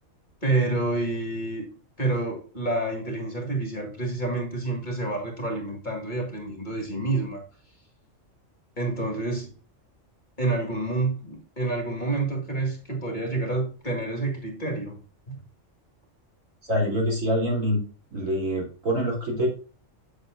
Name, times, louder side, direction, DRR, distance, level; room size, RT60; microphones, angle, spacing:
voice 1, 0.4-1.6 2.0-7.4 8.8-9.5 10.4-15.0 15.3-15.4, right 2 dB, 35° left, 2.3 m, -28 dB
voice 2, 16.6-17.8 18.1-19.5, equal, 85° right, 3.7 m, -25 dB
8.1 x 7.9 x 2.5 m
omnidirectional pair, 1.3 m